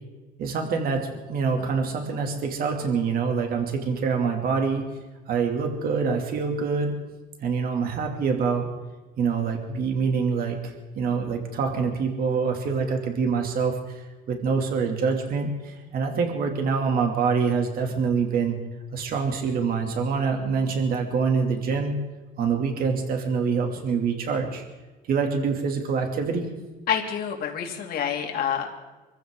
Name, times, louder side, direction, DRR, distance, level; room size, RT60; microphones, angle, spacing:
voice 1, 0.4-4.8 5.3-6.9 7.4-8.7 9.2-18.6 18.9-22.0 22.4-24.6 25.1-26.5, right 5 dB, 60° right, 3 dB, 2.7 m, -25 dB
voice 2, 26.9-28.7, left 8 dB, 65° left, 2 dB, 2.6 m, -27 dB
25.0 x 15.0 x 3.8 m, 1.2 s
cardioid pair, 110°, 17 cm